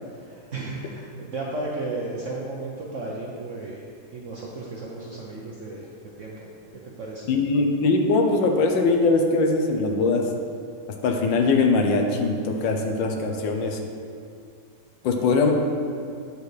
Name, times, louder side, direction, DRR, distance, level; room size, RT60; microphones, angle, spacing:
voice 1, 0.1-3.9 4.1-5.9 6.2-7.3, right 2 dB, 65° right, -3 dB, 0.8 m, -34 dB
voice 2, 7.3-10.2 11.0-13.8 15.0-15.5, left 3 dB, 75° left, 3 dB, 1.4 m, -21 dB
8.2 x 6.6 x 3.3 m, 2.4 s
omnidirectional pair, 2.1 m